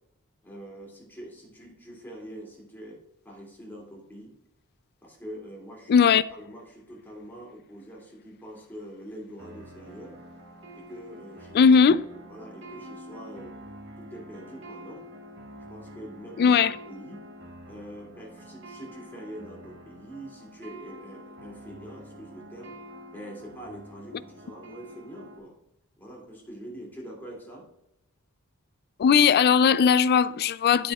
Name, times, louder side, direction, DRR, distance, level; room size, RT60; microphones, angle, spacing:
voice 1, 0.4-3.0 3.2-4.3 5.0-6.0 6.3-10.2 10.7-13.6 14.0-15.0 15.7-16.6 16.9-17.2 17.6-22.7 23.1-25.5 26.0-27.6, equal, 10° left, 2.5 m, -44 dB
voice 2, 5.9-6.2 11.5-12.1 16.4-16.7 29.0-30.9, left 6 dB, 45° left, 0.3 m, -18 dB
sound 1, 9.4-25.4, equal, 60° right, 1.5 m, -46 dB
9.4 x 8.5 x 2.4 m
head